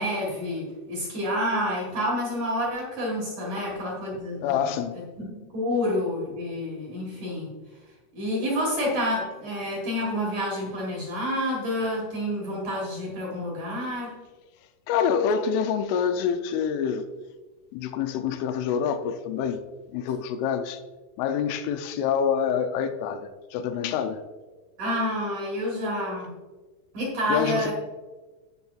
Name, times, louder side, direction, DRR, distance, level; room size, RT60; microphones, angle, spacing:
voice 1, 0.0-4.6 5.2-7.5 8.1-14.1 24.8-26.3 26.9-27.7, left 1 dB, 50° right, 2.5 m, -28 dB
voice 2, 4.4-5.0 14.9-17.1 17.7-19.6 19.9-20.8 21.2-24.2 27.3-27.7, left 7 dB, 85° left, 3.1 m, -26 dB
15.0 x 5.4 x 2.4 m
omnidirectional pair, 5.5 m